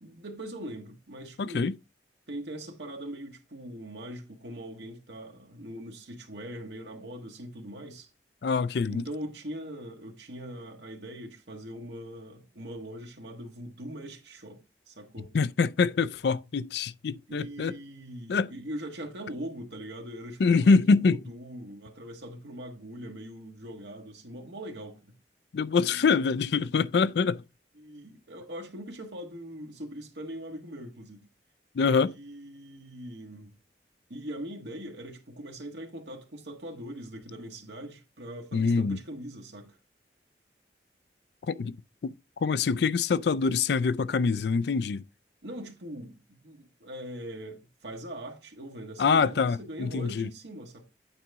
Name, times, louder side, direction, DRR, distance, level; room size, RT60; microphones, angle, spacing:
voice 1, 0.0-1.7 2.3-8.1 8.9-15.3 17.3-25.1 25.9-26.0 27.8-31.3 32.0-33.6 34.1-39.8 45.4-50.9, right 1 dB, 75° right, 1.5 m, -41 dB
voice 2, 1.4-1.7 8.4-9.0 15.3-17.8 18.3-18.5 20.4-21.2 25.5-27.4 31.8-32.1 38.5-39.0 41.5-41.7 42.0-42.1 42.4-45.0 49.0-50.3, left 5 dB, 65° left, 0.4 m, -25 dB
8.9 x 4.0 x 3.5 m
head